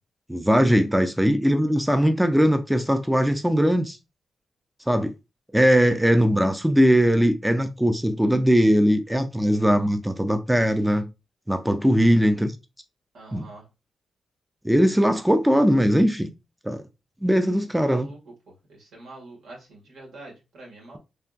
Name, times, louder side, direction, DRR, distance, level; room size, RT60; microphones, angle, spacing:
voice 1, 0.3-4.0 4.9-5.1 5.5-11.1 11.5-12.5 13.3-13.5 14.6-16.3 16.6-16.8 17.2-18.1, equal, 5° right, 0.3 m, -20 dB
voice 2, 13.1-13.7 17.7-21.0, right 2 dB, 75° right, 1.9 m, -45 dB
3.7 x 3.4 x 2.4 m
wide cardioid pair, 130°, 0 cm